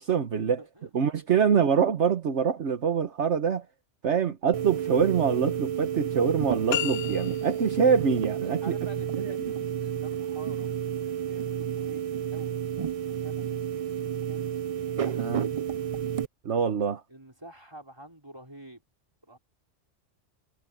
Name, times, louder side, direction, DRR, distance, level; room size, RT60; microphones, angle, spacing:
voice 1, 0.0-0.6 0.9-3.6 4.0-8.7 15.2-15.4 16.4-17.0, right 7 dB, 65° right, 1.4 m, -25 dB
voice 2, 0.6-0.9 8.4-10.7 11.1-12.6 13.1-15.4 17.1-18.8 19.2-19.4, right 1 dB, 20° right, 4.8 m, -48 dB
sound 1, 4.5-16.3, right 9 dB, 45° right, 0.5 m, -31 dB
sound 2, 6.7-7.8, left 14 dB, 70° left, 0.9 m, -32 dB
omnidirectional pair, 1.3 m